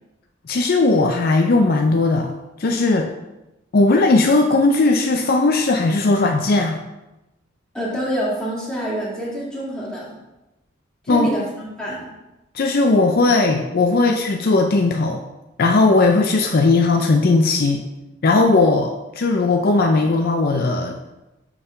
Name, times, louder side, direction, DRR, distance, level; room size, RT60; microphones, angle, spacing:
voice 1, 0.5-2.3 2.6-3.1 3.7-6.8 11.1-11.3 12.5-15.2 15.6-17.8 18.2-21.0, left 3 dB, 50° left, 3 dB, 0.5 m, -17 dB
voice 2, 7.7-10.1 11.0-12.1, right 1 dB, 5° left, -7 dB, 2.0 m, -26 dB
7.0 x 3.6 x 5.5 m, 0.99 s
head